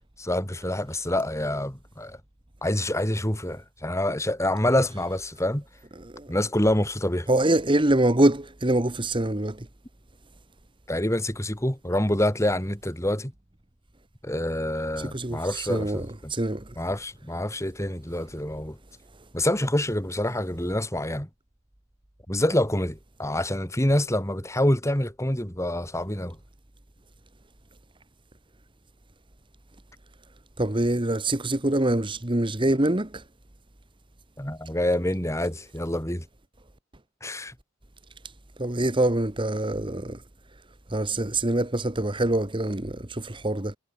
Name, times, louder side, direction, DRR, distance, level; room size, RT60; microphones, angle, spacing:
voice 1, 0.2-2.2 2.6-5.6 6.3-7.3 10.9-13.3 14.2-16.3 16.8-18.8 19.3-21.3 22.3-26.4 34.4-36.3 37.2-37.5, left 1 dB, 15° left, 4.0 m, -26 dB
voice 2, 6.0-6.3 7.3-9.7 15.0-16.7 30.6-33.2 38.6-40.2 40.9-43.8, right 1 dB, 25° right, 1.4 m, -25 dB
head